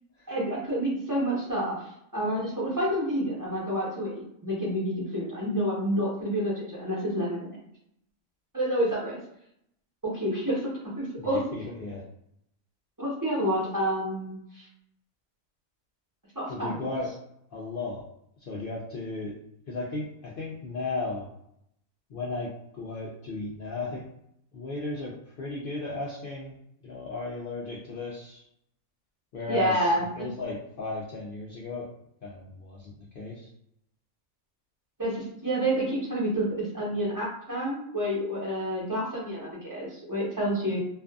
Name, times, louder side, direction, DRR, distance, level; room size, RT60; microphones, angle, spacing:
voice 1, 0.3-1.8 2.1-7.6 8.5-9.2 10.0-10.7 11.0-11.4 13.0-14.7 16.3-16.8 29.5-30.3 35.0-40.8, equal, 15° right, -8 dB, 0.9 m, -29 dB
voice 2, 11.2-12.0 16.5-17.1 17.5-18.0 18.5-19.3 19.7-21.3 22.1-24.1 24.5-26.6 26.8-28.4 29.3-31.9 32.2-33.5, left 2 dB, 70° left, -4 dB, 0.5 m, -35 dB
2.5 x 2.4 x 2.3 m, 0.74 s
omnidirectional pair, 1.5 m